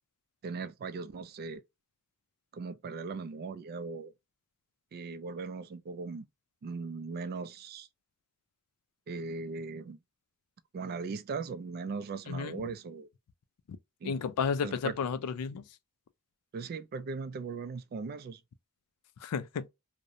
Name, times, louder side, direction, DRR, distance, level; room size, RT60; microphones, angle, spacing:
voice 1, 0.4-1.6 2.5-4.1 4.9-6.3 6.6-7.9 9.1-10.0 10.7-13.1 14.0-14.2 14.6-15.0 16.5-18.4, right 4 dB, 45° right, 0.3 m, -38 dB
voice 2, 12.3-12.6 14.0-15.6 19.2-19.7, left 6 dB, 85° left, 0.4 m, -32 dB
2.5 x 2.1 x 2.7 m
head